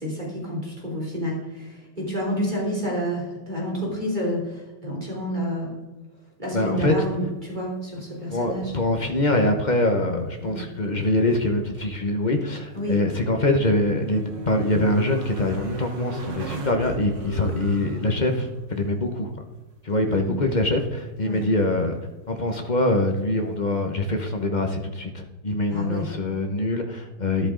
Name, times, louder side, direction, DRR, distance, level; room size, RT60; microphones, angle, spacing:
voice 1, 0.0-5.8 6.4-8.7 10.4-10.6 12.7-13.0 20.1-20.3 21.2-21.4 25.7-26.1, equal, 20° right, -4 dB, 3.5 m, -29 dB
voice 2, 6.5-6.9 8.3-19.3 19.8-22.0 22.3-27.5, left 2 dB, 50° left, 4 dB, 0.5 m, -24 dB
sound 1, 8.0-9.0 9.3-10.1 10.4-10.5 13.0-18.8 21.7-21.8, right 1 dB, 65° right, 2.5 m, -35 dB
13.0 x 11.0 x 3.8 m, 1.1 s
omnidirectional pair, 2.4 m